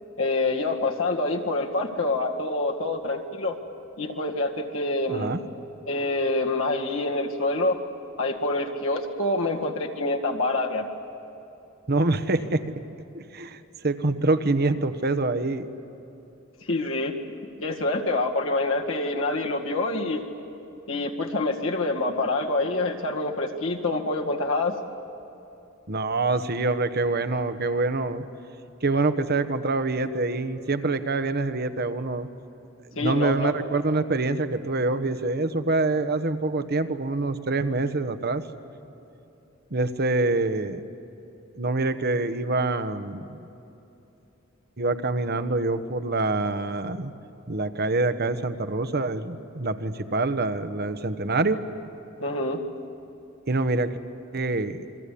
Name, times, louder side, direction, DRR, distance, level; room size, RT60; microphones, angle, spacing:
voice 1, 0.2-3.6 4.0-5.4 5.9-7.8 8.2-10.9 16.7-17.1 17.6-20.2 20.9-24.8 33.0-33.5 52.2-52.6, left 2 dB, 70° left, 1 dB, 2.1 m, -26 dB
voice 2, 5.1-5.4 11.9-12.7 13.1-15.7 25.9-28.2 28.8-32.3 32.9-38.4 39.7-40.8 41.5-43.4 44.8-47.1 47.5-51.6 53.5-54.0 54.3-54.9, right 2 dB, 50° right, 11 dB, 1.2 m, -25 dB
29.0 x 23.0 x 8.6 m, 2.9 s
head